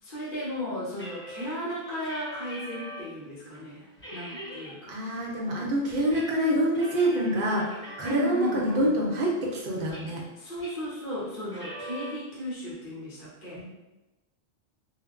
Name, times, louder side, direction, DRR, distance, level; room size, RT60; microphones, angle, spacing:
voice 1, 0.0-5.0 8.0-8.9 10.4-13.6, left 1 dB, 55° left, -8 dB, 1.1 m, -35 dB
sound 1, 0.9-3.1 3.5-3.6 4.0-4.7 5.1-6.2 6.5-8.6 9.1-10.3 10.6-10.9 11.4-12.1, equal, 10° left, 1.2 m, -42 dB
voice 2, 4.9-10.2 13.6-13.7, right 1 dB, 60° right, -2 dB, 0.8 m, -26 dB
3.2 x 2.1 x 2.4 m, 1.0 s
omnidirectional pair, 1.1 m